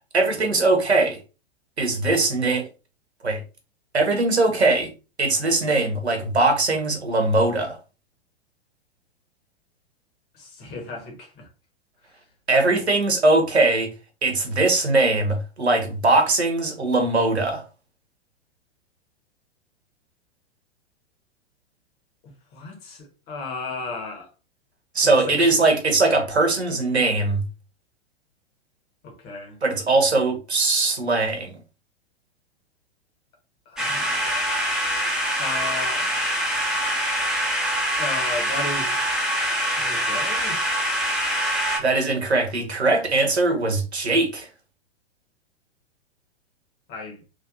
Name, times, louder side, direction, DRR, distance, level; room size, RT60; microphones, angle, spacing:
voice 1, 0.1-1.2 1.8-2.7 3.2-3.4 3.9-4.9 5.2-7.8 12.5-13.9 14.2-17.6 24.9-27.4 29.6-31.6 41.8-44.5, right 2 dB, 80° right, 1.0 m, -21 dB
voice 2, 10.3-11.5 22.2-24.3 25.0-25.4 29.0-29.6 33.6-34.5 35.4-36.1 38.0-38.9 39.8-40.6 46.9-47.2, left 3 dB, 30° left, 1.2 m, -35 dB
sound 1, 33.8-41.8, equal, ahead, 0.7 m, -24 dB
3.3 x 2.6 x 2.5 m
figure-of-eight pair, 100°, 32 cm